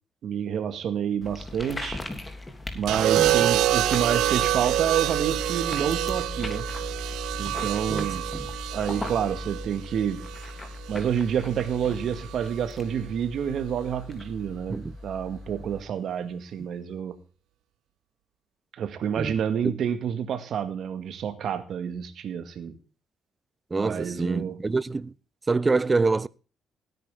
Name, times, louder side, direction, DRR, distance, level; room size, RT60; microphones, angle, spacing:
voice 1, 0.2-2.0 2.7-6.7 7.4-8.3 8.7-10.3 10.9-17.2 18.8-22.8 23.8-24.6, right 8 dB, 65° right, 2.0 m, -29 dB
sound 1, 1.2-15.8, left 2 dB, 20° left, 3.1 m, -38 dB
sound 2, 2.9-11.0 12.2-12.6, right 14 dB, 90° right, 0.6 m, -27 dB
voice 2, 3.2-3.5 7.9-8.4 14.7-14.9 19.2-19.3 19.6-19.8 23.7-25.1 25.5-26.3, right 3 dB, 25° right, 0.6 m, -26 dB
17.0 x 9.3 x 3.8 m
cardioid pair, 90°, 0 cm